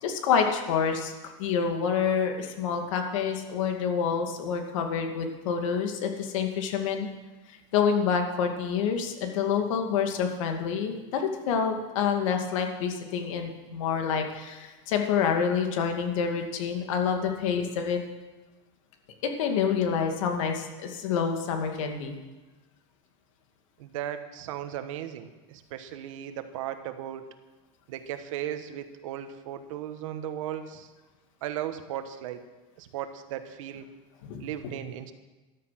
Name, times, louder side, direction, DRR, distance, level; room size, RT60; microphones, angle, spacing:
voice 1, 0.0-1.1 1.4-7.1 7.7-18.0 19.2-22.2 34.2-34.5, left 6 dB, 85° left, 4 dB, 2.4 m, -27 dB
voice 2, 23.8-27.3 27.9-30.9 31.4-32.4 32.8-33.9 34.4-35.1, right 11 dB, 90° right, 9 dB, 1.4 m, -36 dB
13.5 x 12.0 x 5.9 m, 1.2 s
supercardioid pair, 150°, 16 cm